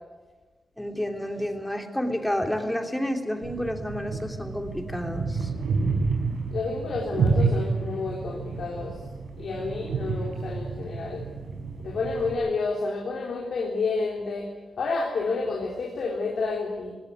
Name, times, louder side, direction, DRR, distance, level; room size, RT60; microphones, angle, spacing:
voice 1, 0.8-5.5, left 1 dB, 10° left, 3 dB, 3.1 m, -30 dB
sound 1, 3.4-12.3, right 4 dB, 90° right, 5.0 m, -29 dB
voice 2, 6.5-8.9 9.4-11.2 11.8-14.5 14.8-16.9, left 3 dB, 75° left, -1 dB, 3.6 m, -29 dB
18.5 x 17.0 x 9.6 m, 1.3 s
cardioid pair, 70°, 0 cm